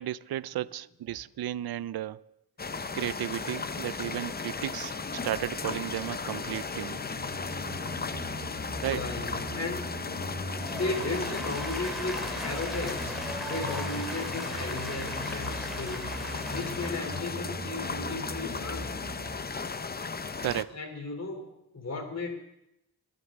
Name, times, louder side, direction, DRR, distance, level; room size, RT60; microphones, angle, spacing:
voice 1, 0.0-2.3 2.9-7.0 8.8-9.1 20.4-20.8, right 12 dB, 75° right, 0.5 m, -34 dB
sound 1, 1.1-1.2 6.7-19.3, right 1 dB, 30° right, 6.5 m, -41 dB
sound 2, 2.6-20.6, left 4 dB, 25° left, 0.6 m, -36 dB
voice 2, 8.9-9.8 10.7-16.2 16.5-19.0 20.7-22.4, left 3 dB, 45° left, 3.0 m, -35 dB
Applause, 10.5-17.2, right 1 dB, ahead, 2.5 m, -40 dB
29.5 x 11.0 x 3.6 m
wide cardioid pair, 95°, 38 cm